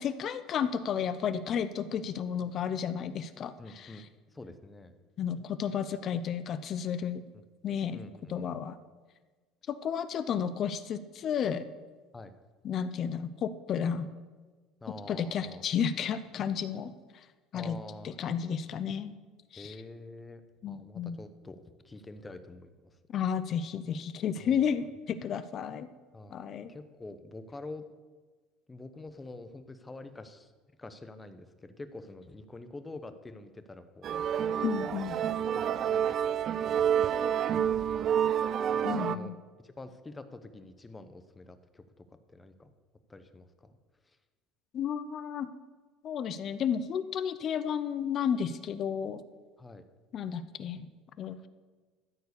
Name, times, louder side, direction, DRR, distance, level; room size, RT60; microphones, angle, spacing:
voice 1, 0.0-3.9 5.2-7.3 7.6-8.0 8.3-8.8 9.7-11.7 12.6-14.1 15.1-16.9 17.5-17.8 18.0-19.1 19.5-19.7 20.6-21.2 23.1-25.9 26.3-26.7 34.6-35.2 38.8-39.4 44.7-45.5 46.0-49.2 50.1-50.9 51.2-51.5, left 7 dB, 40° left, 13 dB, 0.7 m, -32 dB
voice 2, 3.6-4.9 7.3-7.4 7.9-8.6 12.1-12.4 14.8-15.6 17.5-18.2 19.5-20.4 20.7-23.0 24.4-24.7 26.1-27.8 28.7-30.5 30.8-34.1 34.4-35.0 35.5-36.3 36.6-38.4 38.7-39.3 39.6-41.8 42.3-42.7 43.1-43.7 49.6-49.8, left 2 dB, 15° left, 10 dB, 0.8 m, -47 dB
sound 1, 34.0-39.2, right 9 dB, 45° right, 0.4 m, -28 dB
13.5 x 4.7 x 8.4 m, 1.4 s
supercardioid pair, 125°, 0 cm